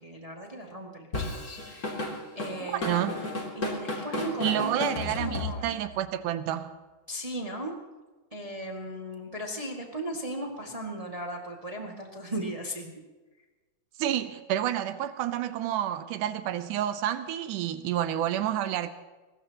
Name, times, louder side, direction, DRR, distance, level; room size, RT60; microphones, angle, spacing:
voice 1, 0.0-4.9 5.2-5.8 7.1-7.7 8.3-12.9, right 1 dB, 15° right, 0 dB, 1.6 m, -37 dB
Drum kit / Drum, 1.1-5.9, left 2 dB, 30° left, 3.0 m, -33 dB
voice 2, 2.6-3.2 4.4-6.7 14.0-18.9, right 11 dB, 85° right, 11 dB, 2.2 m, -29 dB
23.0 x 20.0 x 2.9 m, 1.2 s
omnidirectional pair, 3.6 m